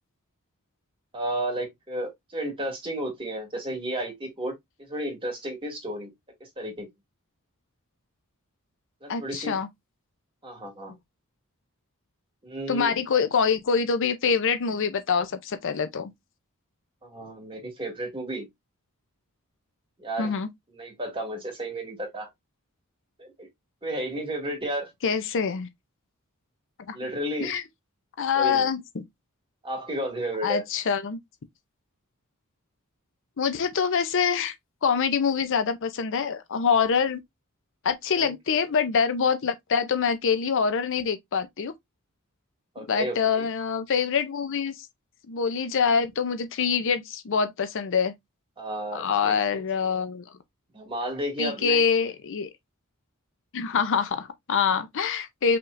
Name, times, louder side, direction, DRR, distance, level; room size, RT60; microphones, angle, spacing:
voice 1, 1.1-4.6 4.9-6.1 6.6-6.9 9.0-9.6 10.4-11.0 12.4-12.9 17.0-18.5 20.0-20.3 20.7-22.3 23.2-23.5 23.8-24.9 26.9-27.5 28.4-28.7 29.6-30.6 38.1-38.6 42.7-43.4 48.6-50.0 50.7-51.8, right 1 dB, 25° right, 2.3 m, -33 dB
voice 2, 9.1-9.7 12.7-16.1 20.2-20.5 25.0-25.7 26.9-27.0 27.4-27.6 28.2-29.0 30.4-31.2 33.4-34.5 34.8-37.2 37.8-41.7 42.9-44.9 45.3-48.1 48.9-50.2 51.4-52.5 53.5-55.6, left 6 dB, 60° left, 0.6 m, -25 dB
5.6 x 3.5 x 2.5 m
head